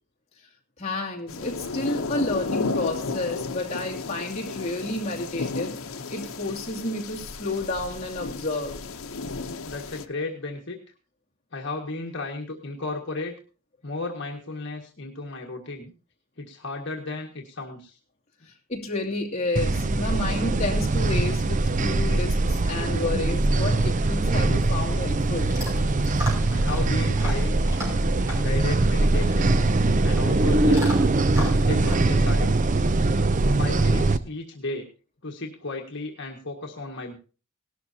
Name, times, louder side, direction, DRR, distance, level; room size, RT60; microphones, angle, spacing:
voice 1, 0.8-5.8 6.1-8.8 18.7-25.5, left 2 dB, 30° left, -1 dB, 2.6 m, -30 dB
sound 1, 1.3-10.1, left 3 dB, 85° left, 0.9 m, -33 dB
voice 2, 9.6-10.8 11.5-13.4 13.8-15.9 16.4-18.0 26.5-27.6 28.4-29.7 30.0-30.9 31.6-32.5 33.6-34.9 35.2-37.1, left 2 dB, 55° left, 0 dB, 1.7 m, -34 dB
sound 2, 19.6-34.2, right 2 dB, 35° right, 0.5 m, -22 dB
Chewing mastication / Dog, 24.3-33.4, left 1 dB, 15° right, 5.7 m, -39 dB
18.0 x 12.5 x 2.8 m, 0.35 s
head